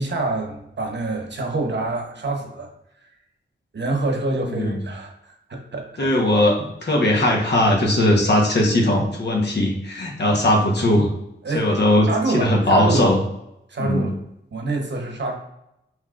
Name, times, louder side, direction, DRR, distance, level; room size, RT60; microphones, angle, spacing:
voice 1, 0.0-2.7 3.7-6.1 11.4-11.7 12.1-13.1 13.7-14.2 14.5-15.4, right 2 dB, 60° right, 2 dB, 1.0 m, -26 dB
voice 2, 4.5-4.8 6.0-11.1 11.5-12.1 12.3-13.2 13.8-14.1, left 1 dB, 55° left, 0 dB, 1.1 m, -19 dB
5.8 x 3.0 x 2.5 m, 0.84 s
wide cardioid pair, 85°, 21 cm